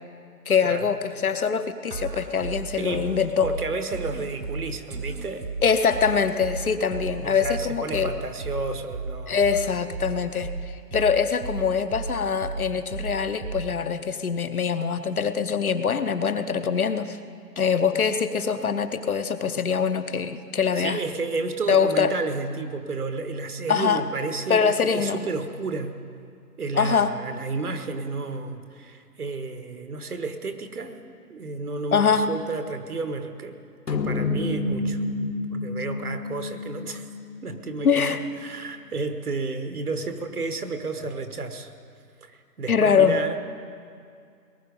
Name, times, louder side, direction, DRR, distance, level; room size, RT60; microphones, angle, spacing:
voice 1, 0.5-3.5 5.6-8.1 9.3-17.2 17.6-21.0 21.7-22.1 23.7-24.0 24.5-25.2 26.8-27.1 31.9-32.4 37.8-38.2 42.7-43.2, left 6 dB, 60° left, 10 dB, 0.8 m, -23 dB
sound 1, 1.9-13.9, right 4 dB, 80° right, 1.2 m, -35 dB
voice 2, 3.4-5.5 7.2-9.5 20.8-26.0 26.6-33.6 33.9-35.0 35.5-37.0 37.4-41.7 42.2-43.4, right 3 dB, 65° right, 8 dB, 1.4 m, -32 dB
sound 2, 33.9-38.5, left 3 dB, 80° left, 1.5 m, -30 dB
19.5 x 11.0 x 5.3 m, 2.3 s
hypercardioid pair, 180°, 48 cm